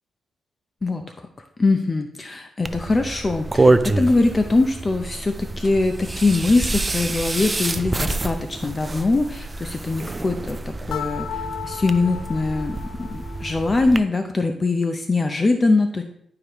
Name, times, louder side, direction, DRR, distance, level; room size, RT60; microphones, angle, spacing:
voice 1, 0.8-1.3 1.6-16.0, left 3 dB, 30° left, 6 dB, 0.5 m, -22 dB
sound 1, 2.6-14.0, right 2 dB, 20° right, 0.4 m, -26 dB
sound 2, 10.9-13.8, left 8 dB, 85° left, 0.4 m, -34 dB
10.5 x 4.9 x 3.0 m, 0.70 s
cardioid pair, 100°, 0 cm